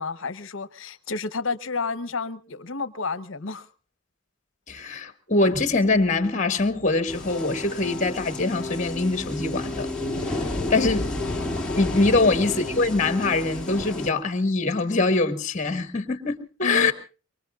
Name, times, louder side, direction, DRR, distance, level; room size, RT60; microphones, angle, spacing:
voice 1, 0.0-3.7 12.0-12.2 16.6-16.9, left 4 dB, 65° left, 1.0 m, -31 dB
voice 2, 4.7-9.9 10.4-11.1 11.7-16.9, left 3 dB, 35° left, 1.8 m, -23 dB
sound 1, 7.1-14.1, left 2 dB, 5° left, 2.6 m, -31 dB
25.0 x 24.0 x 2.4 m
head